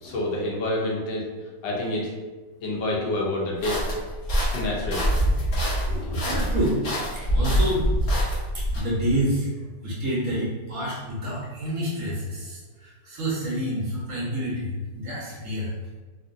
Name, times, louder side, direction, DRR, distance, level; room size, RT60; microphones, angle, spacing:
voice 1, 0.0-1.3 1.6-2.1 2.6-3.8 4.5-5.1 5.9-6.2, left 1 dB, 80° left, -3 dB, 1.4 m, -28 dB
sound 1, 3.6-8.8, equal, 45° left, 1.0 m, -25 dB
voice 2, 6.3-6.9 7.1-7.9 8.5-9.5 9.8-15.7, equal, 60° right, -6 dB, 0.9 m, -28 dB
3.7 x 2.2 x 2.5 m, 1.3 s
omnidirectional pair, 2.0 m